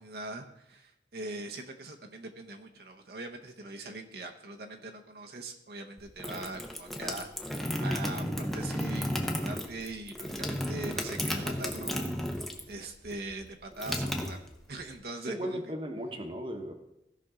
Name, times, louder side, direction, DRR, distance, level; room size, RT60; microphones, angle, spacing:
voice 1, 0.0-14.4 14.7-15.6, right 2 dB, 60° right, 3 dB, 0.8 m, -42 dB
sound 1, 6.0-12.8 13.0-14.9, equal, ahead, 0.7 m, -33 dB
voice 2, 15.3-16.7, equal, 30° right, 4 dB, 1.0 m, -36 dB
16.5 x 5.9 x 3.7 m, 0.87 s
head